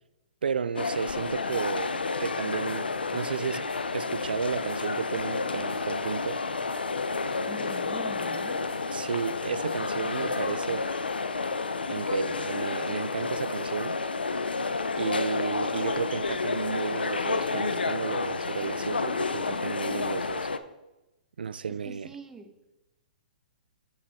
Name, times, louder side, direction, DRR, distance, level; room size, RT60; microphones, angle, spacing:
voice 1, 0.4-3.7 3.9-6.4 8.9-11.0 11.9-14.0 15.0-20.5 21.4-22.1, right 6 dB, 80° right, 0.3 m, -33 dB
sound 1, 0.7-20.6, left 4 dB, 90° left, 0.6 m, -30 dB
sound 2, 2.7-10.5, left 4 dB, 20° left, 2.2 m, -57 dB
voice 2, 7.4-8.7 19.9-20.0 21.7-22.5, right 3 dB, 10° right, 0.9 m, -44 dB
7.8 x 6.4 x 4.2 m
hypercardioid pair, 130°, 5 cm